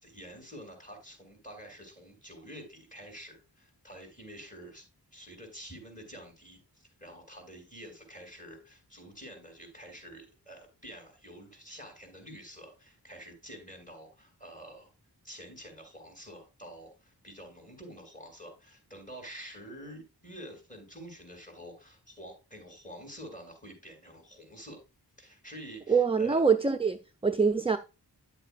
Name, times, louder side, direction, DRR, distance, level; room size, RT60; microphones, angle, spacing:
voice 1, 0.0-4.8 5.1-14.9 15.2-24.8 25.2-26.4, equal, 20° left, 4.9 m, -48 dB
voice 2, 25.9-27.8, right 5 dB, 15° right, 0.5 m, -25 dB
10.5 x 8.0 x 2.4 m
wide cardioid pair, 50°, 39 cm